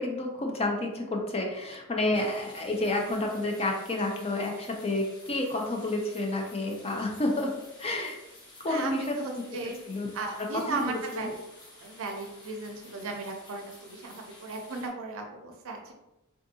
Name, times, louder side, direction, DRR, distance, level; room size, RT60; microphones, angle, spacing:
voice 1, 0.0-7.5 7.8-8.2 8.6-9.4 9.9-10.1 10.7-11.3, left 2 dB, 25° left, 1 dB, 0.5 m, -30 dB
sound 1, 2.1-14.9, left 1 dB, 55° left, 1.2 m, -52 dB
voice 2, 8.7-9.8 10.1-11.3 11.8-15.9, right 3 dB, 65° right, 3 dB, 0.5 m, -36 dB
3.5 x 2.5 x 2.7 m, 0.95 s
head